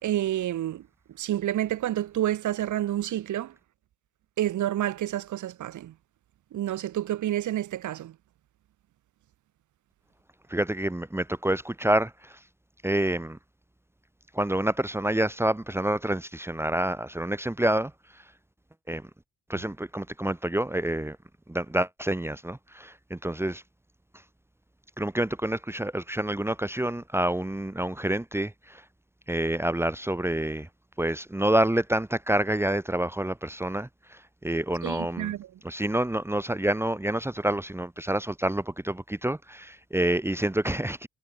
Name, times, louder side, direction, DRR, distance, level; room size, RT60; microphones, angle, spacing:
voice 1, 0.0-0.9 1.1-3.5 4.4-5.9 6.5-8.2 34.8-35.5, right 12 dB, 75° right, 3.8 m, -29 dB
voice 2, 10.5-12.4 12.8-13.4 14.3-18.2 18.9-19.1 19.5-21.2 21.5-23.6 25.0-28.8 29.3-30.7 31.0-35.3 35.6-41.1, right 1 dB, 10° right, 1.4 m, -28 dB
cardioid pair, 90°, 30 cm